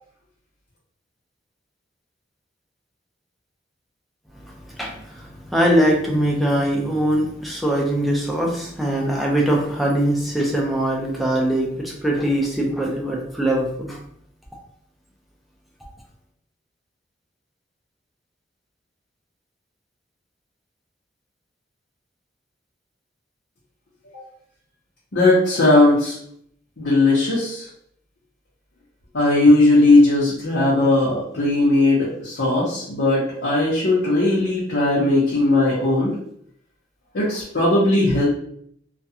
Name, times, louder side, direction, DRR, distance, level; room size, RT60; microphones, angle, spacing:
voice 1, 4.4-14.0, right 1 dB, ahead, -2 dB, 0.5 m, -22 dB
voice 2, 25.1-26.1 26.8-27.7 29.1-36.1 37.1-38.2, left 2 dB, 80° left, -8 dB, 0.8 m, -18 dB
2.4 x 2.2 x 2.7 m, 0.67 s
head